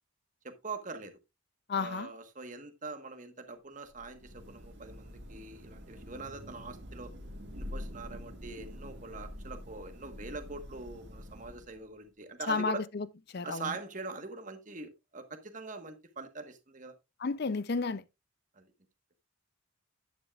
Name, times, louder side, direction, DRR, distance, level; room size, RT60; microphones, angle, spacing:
voice 1, 0.4-1.2 1.7-7.1 7.5-12.8 13.4-16.9 18.5-18.7, right 3 dB, 35° right, 1.3 m, -43 dB
voice 2, 1.7-2.1 12.5-13.1 13.3-13.7 17.2-18.0, left 4 dB, 45° left, 0.5 m, -32 dB
Thunder / Rain, 3.9-11.9, left 1 dB, 50° right, 1.9 m, -46 dB
10.5 x 9.5 x 2.4 m
head